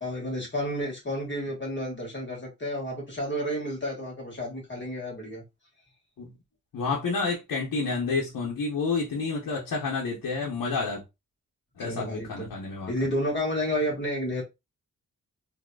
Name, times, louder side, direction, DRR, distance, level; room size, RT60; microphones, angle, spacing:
voice 1, 0.0-5.4 11.8-12.5 12.9-14.4, equal, 35° left, 2.0 m, -31 dB
voice 2, 6.7-11.0 11.8-12.9, left 4 dB, 90° left, 1.0 m, -29 dB
3.7 x 2.8 x 2.3 m
wide cardioid pair, 100°, 33 cm